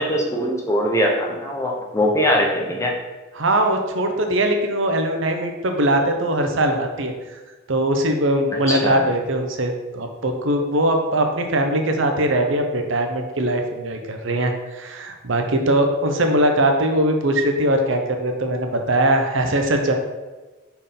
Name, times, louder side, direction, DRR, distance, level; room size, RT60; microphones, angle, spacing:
voice 1, 0.0-2.9 8.7-9.1, equal, 15° left, -1 dB, 1.0 m, -21 dB
voice 2, 3.3-7.4 7.7-19.9, right 1 dB, 65° right, 4 dB, 0.9 m, -21 dB
5.2 x 4.6 x 5.6 m, 1.2 s
head